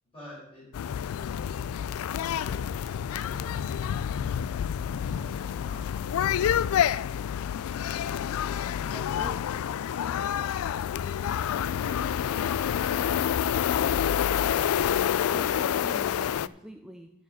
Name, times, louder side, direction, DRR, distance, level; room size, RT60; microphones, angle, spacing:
voice 1, 0.1-0.7 4.9-6.2, left 1 dB, 25° left, -8 dB, 4.9 m, -49 dB
sound 1, 0.7-16.5, left 9 dB, 75° left, 0.3 m, -28 dB
voice 2, 8.7-9.4 15.3-17.1, right 1 dB, 5° right, 4 dB, 0.4 m, -44 dB
11.5 x 4.8 x 7.4 m, 0.81 s
head